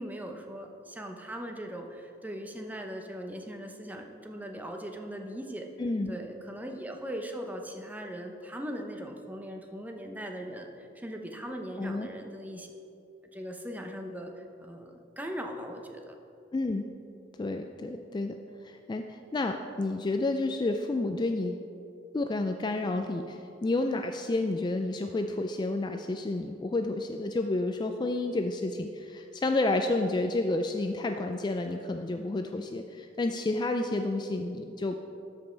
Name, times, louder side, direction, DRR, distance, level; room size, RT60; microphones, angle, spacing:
voice 1, 0.0-5.7 6.1-12.7 13.3-16.1, equal, 10° right, 3 dB, 0.7 m, -39 dB
voice 2, 5.8-6.2 11.8-12.1 16.5-16.9 17.4-18.4 18.6-21.6 22.1-35.0, left 2 dB, 25° left, 5 dB, 0.3 m, -30 dB
13.0 x 5.3 x 4.5 m, 2.6 s
head